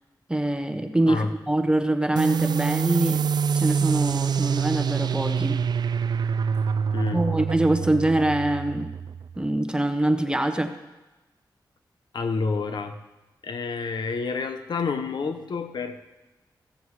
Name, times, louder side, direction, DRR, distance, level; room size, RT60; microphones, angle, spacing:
voice 1, 0.3-3.2 3.5-5.6 7.1-8.9 9.4-10.7, right 1 dB, 10° right, 7 dB, 1.1 m, -24 dB
sound 1, 2.2-9.4, right 6 dB, 65° right, 0.3 m, -26 dB
voice 2, 12.1-13.0 13.4-16.0, left 4 dB, 70° left, 8 dB, 0.9 m, -28 dB
15.5 x 7.1 x 4.8 m, 1.1 s
cardioid pair, 65°, 8 cm